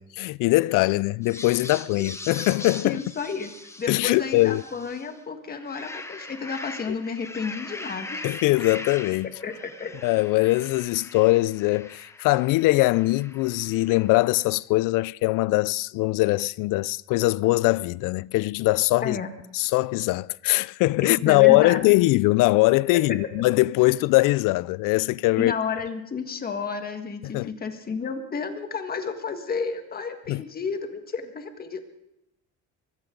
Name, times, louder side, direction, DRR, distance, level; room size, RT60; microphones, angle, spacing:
voice 1, 0.0-3.0 3.9-4.6 8.2-9.3 10.0-19.2 19.5-25.5 27.2-27.5 30.3-30.4, left 20 dB, 80° left, 0.5 m, -21 dB
sound 1, 1.2-5.1 5.5-14.2, left 2 dB, 10° left, 0.9 m, -41 dB
voice 2, 2.8-3.5 3.8-8.3 9.4-9.9 19.0-19.3 21.0-21.9 22.9-23.2 25.4-31.8, left 5 dB, 30° left, 1.7 m, -31 dB
22.5 x 15.5 x 3.9 m
cardioid pair, 150°, 31 cm